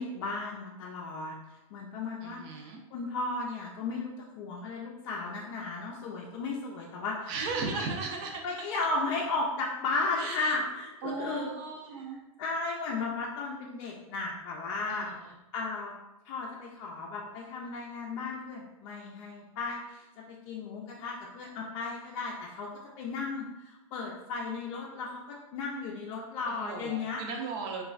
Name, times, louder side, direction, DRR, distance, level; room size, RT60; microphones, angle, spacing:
voice 1, 0.0-1.3 1.7-7.4 7.7-7.9 8.4-11.5 11.9-12.0 12.4-15.1 15.5-15.9 16.2-22.7 23.0-27.2, left 3 dB, 50° left, -3 dB, 0.5 m, -35 dB
voice 2, 2.2-2.8 7.3-8.4 10.2-10.6 11.0-12.2 14.9-15.2 26.5-27.8, right 4 dB, 45° right, 1 dB, 0.6 m, -36 dB
3.0 x 2.3 x 2.4 m, 0.96 s
hypercardioid pair, 115°, 18 cm